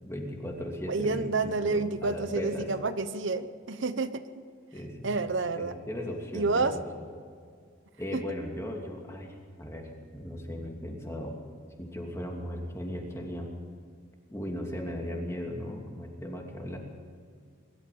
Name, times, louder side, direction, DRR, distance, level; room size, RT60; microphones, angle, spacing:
voice 1, 0.0-2.7 4.7-5.1 5.6-7.0 8.0-11.4 11.8-13.5 14.3-16.8, left 1 dB, 15° left, 1 dB, 2.7 m, -37 dB
voice 2, 0.9-4.1 5.0-5.7 6.3-6.7 8.1-8.2, right 3 dB, 70° right, 11 dB, 0.9 m, -29 dB
23.5 x 13.0 x 8.6 m, 2.1 s
head